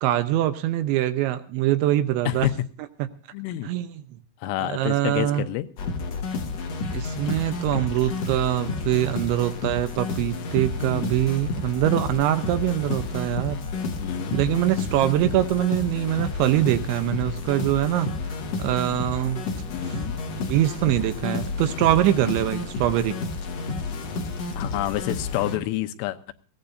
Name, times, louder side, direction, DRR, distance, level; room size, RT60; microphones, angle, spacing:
voice 1, 0.0-2.5 3.6-4.0 4.7-5.4 6.9-13.6 14.3-19.4 19.9-20.1 20.5-23.2, right 13 dB, 80° right, 11 dB, 3.0 m, -23 dB
voice 2, 3.3-3.7 4.4-5.7 10.8-11.1 14.0-14.4 19.7-20.2 24.6-26.3, left 15 dB, 90° left, 10 dB, 3.4 m, -28 dB
sound 1, 5.8-25.6, left 3 dB, 65° left, 1.6 m, -31 dB
21.5 x 16.5 x 2.7 m, 0.37 s
omnidirectional pair, 5.6 m